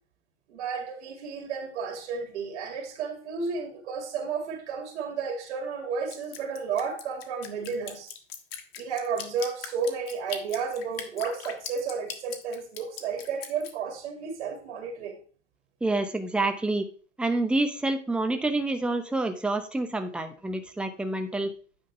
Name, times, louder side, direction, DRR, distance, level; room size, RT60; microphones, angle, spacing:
voice 1, 0.5-8.1 8.8-15.2, right 5 dB, 60° right, 2.2 m, -32 dB
Drip, 6.1-13.7, left 8 dB, 50° left, 1.5 m, -39 dB
voice 2, 15.8-16.9 17.2-21.5, right 2 dB, 5° right, 0.6 m, -28 dB
9.3 x 3.8 x 5.4 m
hypercardioid pair, 115°, 38 cm